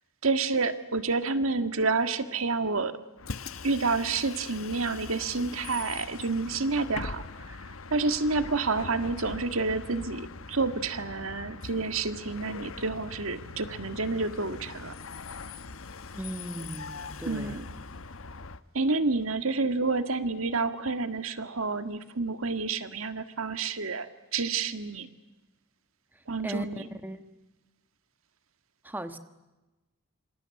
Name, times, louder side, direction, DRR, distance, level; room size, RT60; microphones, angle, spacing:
voice 1, 0.2-3.0 3.6-15.0 17.3-17.7 18.7-25.1 26.3-26.9, right 3 dB, 80° right, 9 dB, 1.8 m, -29 dB
Bus, 3.2-18.6, left 4 dB, 75° left, 1.1 m, -42 dB
voice 2, 16.1-17.6 26.4-26.7 27.0-27.2 28.8-29.2, right 1 dB, 10° right, 9 dB, 1.3 m, -37 dB
27.5 x 25.5 x 8.4 m, 1.1 s
head